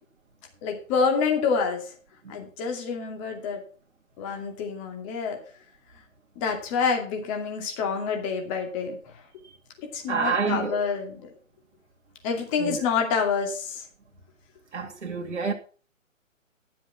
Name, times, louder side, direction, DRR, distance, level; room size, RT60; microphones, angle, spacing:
voice 1, 0.6-1.9 2.3-3.6 4.2-5.4 6.4-9.2 9.8-11.3 12.2-13.9, left 5 dB, 25° left, 2.6 m, -27 dB
voice 2, 10.1-10.8 12.6-12.8 14.7-15.5, right 5 dB, 60° right, 2.6 m, -27 dB
12.0 x 7.5 x 5.7 m
figure-of-eight pair, 135°, 40 cm